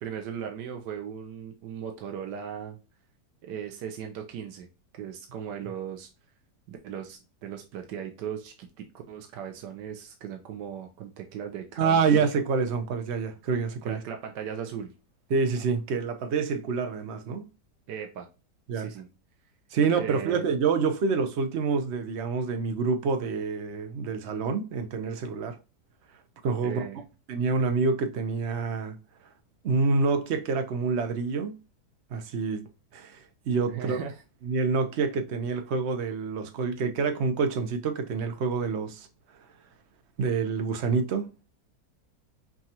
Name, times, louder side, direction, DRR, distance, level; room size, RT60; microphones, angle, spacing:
voice 1, 0.0-2.8 3.4-4.7 4.9-6.1 6.7-12.3 13.8-14.9 17.9-18.3 18.7-19.1 19.9-20.4 26.6-27.0 33.7-34.1, right 8 dB, 85° right, 1.4 m, -37 dB
voice 2, 11.8-14.0 15.3-17.5 18.7-18.9 19.7-25.6 26.4-26.9 27.3-29.0 29.6-31.5 32.1-32.6 32.9-34.0 34.4-39.1 40.2-41.3, right 4 dB, 55° right, 0.8 m, -27 dB
5.8 x 2.4 x 2.8 m
omnidirectional pair, 1.9 m